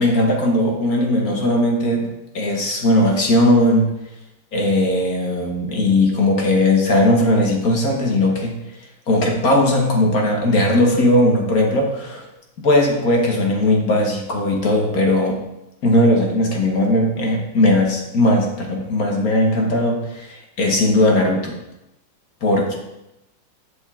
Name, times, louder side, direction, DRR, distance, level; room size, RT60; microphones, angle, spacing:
voice 1, 0.0-2.1 2.3-3.9 4.5-8.6 9.1-12.2 12.6-15.4 15.8-21.5 22.4-22.7, left 1 dB, 50° left, 1 dB, 1.4 m, -18 dB
7.8 x 6.3 x 3.6 m, 0.90 s
omnidirectional pair, 2.2 m